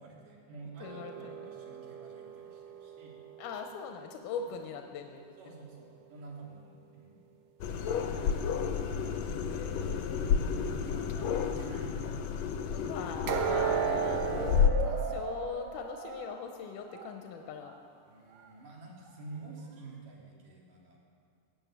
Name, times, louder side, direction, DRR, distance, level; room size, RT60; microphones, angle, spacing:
voice 1, 0.0-3.2 4.4-4.5 5.4-7.2 8.2-8.5 9.3-12.0 18.1-21.0, right 3 dB, 85° right, -2 dB, 3.9 m, -50 dB
voice 2, 0.8-1.5 3.4-5.5 9.3-10.6 12.7-14.4 14.8-17.7, left 6 dB, 90° left, 4 dB, 2.3 m, -42 dB
sound 1, 0.8-3.9 13.3-17.2 17.6-17.8 18.4-18.5, right 7 dB, 65° right, 2.0 m, -35 dB
sound 2, 7.6-14.7, left 7 dB, 70° left, 1.7 m, -31 dB
17.5 x 8.8 x 7.2 m, 2.3 s
omnidirectional pair, 3.7 m